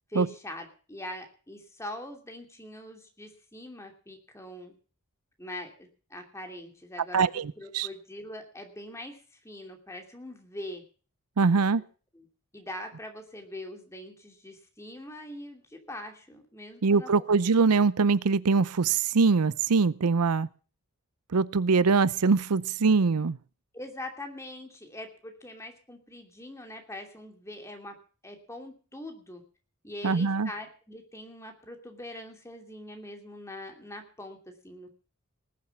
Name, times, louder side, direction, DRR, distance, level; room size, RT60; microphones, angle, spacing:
voice 1, 0.1-4.7 5.4-10.8 11.7-11.8 12.1-12.3 12.5-17.1 23.7-27.9 28.2-29.4 29.8-34.9, left 1 dB, 15° left, 4 dB, 2.7 m, -42 dB
voice 2, 7.1-7.9 11.4-11.8 16.8-20.5 21.3-23.4 30.0-30.5, right 4 dB, 90° right, 19 dB, 0.6 m, -23 dB
19.5 x 7.6 x 7.1 m, 0.39 s
head